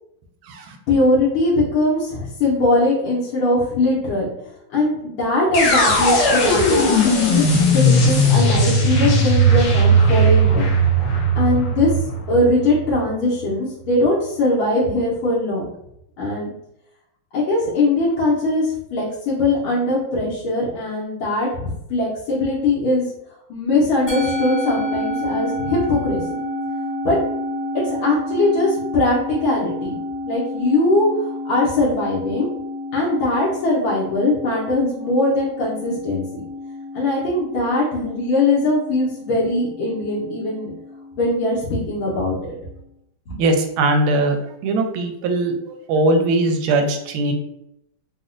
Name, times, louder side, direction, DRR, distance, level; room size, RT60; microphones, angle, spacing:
voice 1, 0.9-4.3 4.7-10.7 11.3-11.9 12.3-15.6 16.2-16.5 17.3-23.1 23.5-26.2 27.0-27.2 27.8-30.0 30.3-32.5 32.9-36.2 36.9-40.7 41.1-42.3 43.3-43.4, left 2 dB, 85° left, -7 dB, 1.6 m, -21 dB
sound 1, 5.5-13.5, right 1 dB, 70° left, 1.3 m, -17 dB
Musical instrument, 24.1-42.6, left 1 dB, 20° left, 0.7 m, -30 dB
voice 2, 43.4-44.4 44.6-47.3, right 2 dB, 85° right, 5 dB, 1.4 m, -20 dB
4.1 x 2.1 x 2.5 m, 0.79 s
omnidirectional pair, 2.2 m